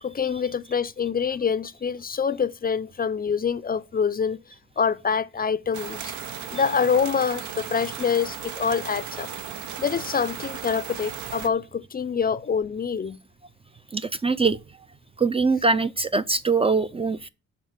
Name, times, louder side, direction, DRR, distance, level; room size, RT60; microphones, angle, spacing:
voice 1, 0.0-4.4 4.8-6.1 6.5-9.3 9.8-13.2, left 6 dB, 30° left, 0.5 m, -26 dB
sound 1, 5.7-11.5, right 8 dB, 75° right, 1.1 m, -36 dB
voice 2, 13.9-14.6 15.2-17.3, right 4 dB, 20° right, 0.5 m, -22 dB
7.3 x 5.2 x 7.2 m
cardioid pair, 90°, 30 cm